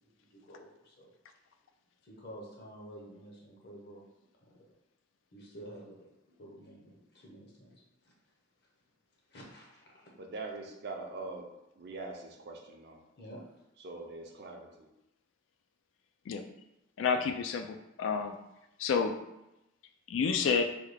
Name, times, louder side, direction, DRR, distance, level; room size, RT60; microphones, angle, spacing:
voice 1, 0.3-1.1 2.0-4.0 5.3-6.1 6.4-7.8 9.3-10.1 13.2-13.4, right 1 dB, 60° left, -2 dB, 0.8 m, -50 dB
voice 2, 10.2-11.5 11.8-13.0 13.8-14.9, right 3 dB, 55° right, 2 dB, 0.5 m, -42 dB
voice 3, 17.0-18.4 18.8-19.2 20.1-20.6, left 5 dB, 80° left, 6 dB, 0.3 m, -29 dB
3.4 x 2.3 x 3.2 m, 0.90 s
head